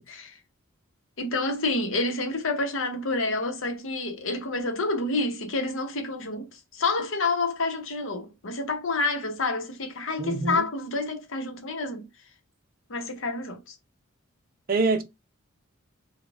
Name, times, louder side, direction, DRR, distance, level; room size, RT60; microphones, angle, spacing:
voice 1, 0.1-0.4 1.2-12.1 12.9-13.8, left 3 dB, 70° left, 0.9 m, -28 dB
voice 2, 10.2-10.7 14.7-15.0, right 3 dB, 45° right, 0.6 m, -25 dB
4.0 x 2.3 x 3.4 m
head